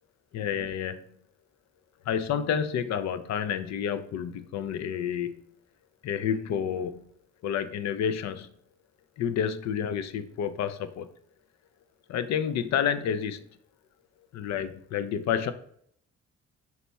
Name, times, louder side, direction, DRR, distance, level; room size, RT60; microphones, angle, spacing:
voice 1, 0.3-1.0 2.1-5.3 6.0-7.0 7.4-8.5 9.2-11.1 12.1-13.4 14.3-15.5, left 8 dB, 65° left, 12 dB, 0.5 m, -29 dB
4.1 x 2.2 x 4.0 m, 0.67 s
cardioid pair, 90°, 30 cm